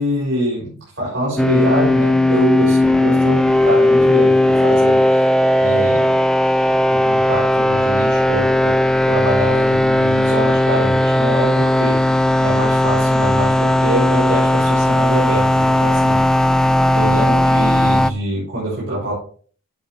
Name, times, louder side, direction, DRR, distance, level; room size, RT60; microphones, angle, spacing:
voice 1, 0.0-5.2 5.6-6.2 6.7-8.8 9.1-12.1 12.4-16.2 16.9-19.1, right 1 dB, 55° right, -8 dB, 5.8 m, -24 dB
sound 1, 1.4-18.1, left 1 dB, 5° left, 0.4 m, -16 dB
13.0 x 7.4 x 3.3 m, 0.43 s
head